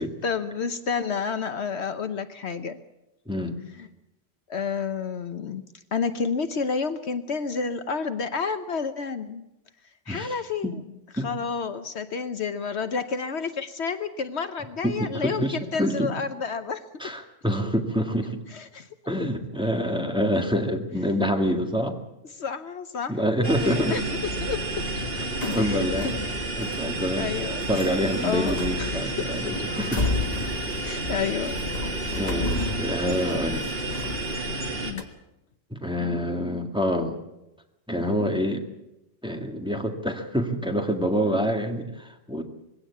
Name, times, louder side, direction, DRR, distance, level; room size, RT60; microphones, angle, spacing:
voice 1, 0.2-2.8 4.5-5.6 5.9-9.4 10.1-10.8 11.1-16.8 18.5-18.9 22.4-23.2 23.4-24.0 24.4-24.6 25.6-26.1 27.2-27.6 28.2-29.1 30.8-31.6 32.0-32.2 34.8-35.0, left 5 dB, 65° left, 10 dB, 1.2 m, -30 dB
voice 2, 3.3-3.6 10.1-10.4 10.6-10.7 11.2-11.3 14.8-16.1 17.0-18.4 19.1-22.0 23.1-24.0 25.5-26.2 26.6-27.4 27.7-30.0 30.4-30.6 32.1-33.7 35.7-37.1 37.9-38.7 39.2-42.4, equal, 5° right, 3 dB, 1.9 m, -26 dB
sound 1, 23.4-34.9, right 2 dB, 50° right, 2.7 m, -31 dB
sound 2, 25.4-26.1 26.6-26.8 27.6-34.7 35.0-35.1, left 3 dB, 35° left, 1.6 m, -33 dB
21.5 x 16.5 x 8.4 m, 0.93 s
omnidirectional pair, 1.3 m